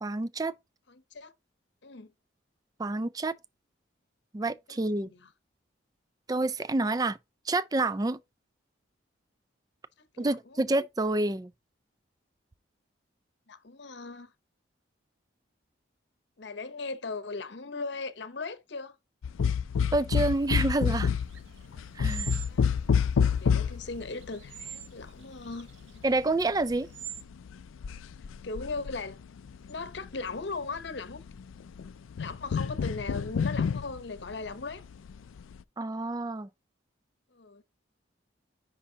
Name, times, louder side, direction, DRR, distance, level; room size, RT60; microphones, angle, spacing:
voice 1, 0.0-0.5 2.8-3.4 4.3-5.1 6.3-7.2 7.5-8.2 10.2-11.5 19.9-21.1 22.0-22.4 26.0-26.9 35.8-36.5, right 2 dB, 20° right, 0.3 m, -28 dB
voice 2, 0.9-1.3 1.8-2.1 4.7-5.3 10.0-10.6 13.5-14.3 16.4-19.0 22.4-22.7 23.4-25.7 28.4-29.2 29.7-31.2 32.2-34.9 37.3-37.6, left 3 dB, 60° left, 0.9 m, -38 dB
sound 1, 19.2-25.1 25.4-30.4 30.7-35.6, left 6 dB, 90° left, 0.4 m, -29 dB
sound 2, 20.4-27.2, right 9 dB, 70° right, 0.8 m, -46 dB
9.8 x 5.2 x 2.8 m
head